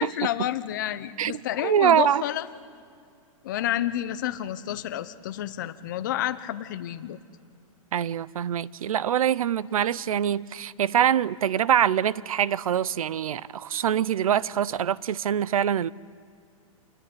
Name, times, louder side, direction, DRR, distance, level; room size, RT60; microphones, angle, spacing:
voice 1, 0.0-2.5 3.4-7.2, left 12 dB, 35° left, 0.9 m, -30 dB
voice 2, 1.2-2.2 7.9-15.9, right 9 dB, 75° right, 0.7 m, -24 dB
26.5 x 21.0 x 9.7 m
hypercardioid pair, 175°, 18 cm